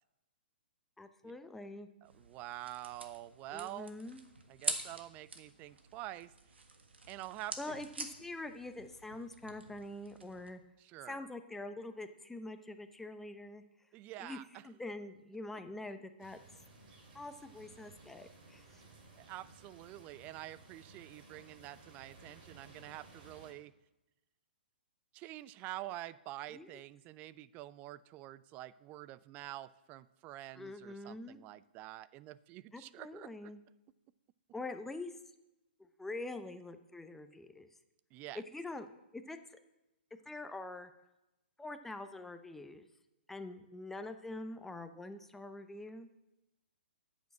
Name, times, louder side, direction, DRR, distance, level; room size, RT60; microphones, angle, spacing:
voice 1, 1.0-1.9 3.5-4.2 7.6-10.6 11.1-13.6 14.2-14.4 14.6-16.4 17.1-18.8 26.5-26.8 30.5-31.4 32.7-33.6 34.5-35.1 35.8-37.7 38.3-38.9 39.1-39.6 40.2-40.9 41.6-42.9 43.3-46.1, left 2 dB, 5° left, 8 dB, 0.7 m, -45 dB
voice 2, 2.0-3.9 4.5-6.3 7.1-7.7 10.8-11.3 13.9-14.7 19.2-23.7 25.1-33.5 38.1-38.4, right 15 dB, 30° right, 18 dB, 0.4 m, -47 dB
sound 1, 2.0-10.5, right 3 dB, 85° right, 1.5 m, -45 dB
sound 2, 16.2-23.5, right 3 dB, 55° right, 3.6 m, -58 dB
9.3 x 7.2 x 7.3 m, 0.96 s
hypercardioid pair, 130°, 6 cm